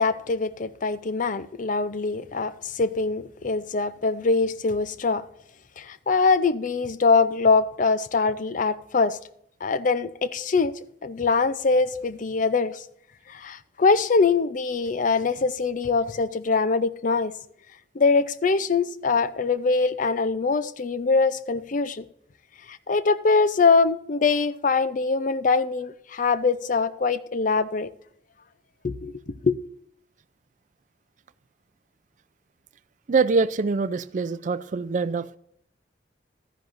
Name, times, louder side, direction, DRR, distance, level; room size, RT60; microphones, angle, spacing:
voice 1, 0.0-5.2 5.8-9.2 9.6-10.7 11.0-12.8 13.3-17.3 17.9-22.0 22.7-27.9 28.8-29.6, left 4 dB, 45° left, 0.5 m, -23 dB
voice 2, 33.1-35.4, right 4 dB, 45° right, 0.4 m, -24 dB
13.0 x 10.5 x 2.6 m
head